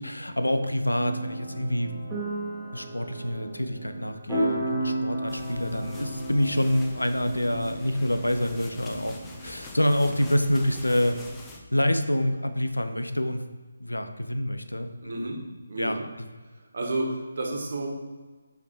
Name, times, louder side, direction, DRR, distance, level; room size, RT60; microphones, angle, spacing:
voice 1, 0.0-2.2 2.7-9.2 9.4-11.2 11.7-13.4 13.8-15.3 15.8-16.0, left 1 dB, 85° left, 8 dB, 0.6 m, -27 dB
sound 1, 1.0-10.6, right 1 dB, 10° right, 1.3 m, -34 dB
sound 2, 5.3-11.6, left 2 dB, 10° left, 0.7 m, -45 dB
voice 2, 15.0-15.4 15.7-16.0 16.7-17.9, right 2 dB, 55° right, 1 dB, 1.3 m, -30 dB
5.1 x 5.0 x 4.6 m, 1.3 s
figure-of-eight pair, 150°, 0 cm